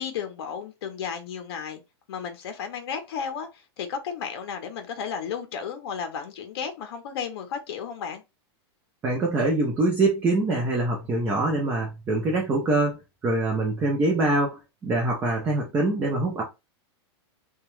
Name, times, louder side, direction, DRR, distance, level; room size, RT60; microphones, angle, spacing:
voice 1, 0.0-1.8 2.1-8.2, left 7 dB, 65° left, 0.6 m, -33 dB
voice 2, 9.0-13.0 13.2-16.4, right 2 dB, 15° right, 0.5 m, -24 dB
2.8 x 2.2 x 3.0 m
supercardioid pair, 165°, 14 cm